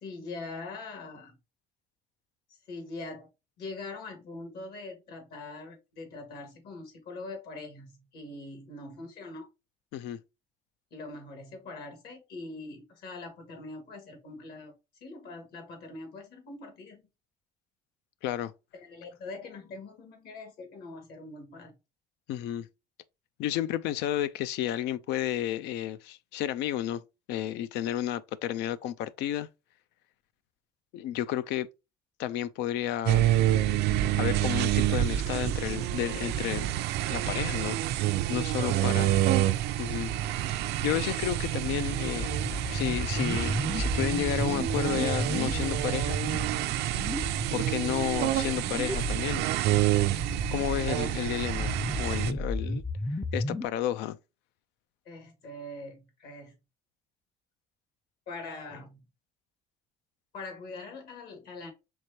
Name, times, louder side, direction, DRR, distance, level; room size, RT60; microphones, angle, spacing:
voice 1, 0.0-1.4 2.7-3.3 3.6-9.5 10.9-14.7 15.0-17.0 18.7-21.7 38.6-38.9 55.1-56.5 58.3-59.0 60.3-61.7, left 3 dB, 70° left, 1.9 m, -43 dB
voice 2, 22.3-22.7 23.4-27.0 27.3-29.5 30.9-31.7 32.2-33.3 34.2-36.7 37.1-37.8 38.3-39.1 39.8-42.3 42.7-46.2 47.5-49.4 50.5-52.8 53.3-54.2, left 12 dB, 90° left, 0.4 m, -32 dB
sound 1, 33.1-52.3, right 13 dB, 80° right, 0.4 m, -28 dB
sound 2, 42.1-53.7, left 1 dB, 5° left, 0.4 m, -34 dB
4.7 x 3.4 x 2.8 m
cardioid pair, 110°, 17 cm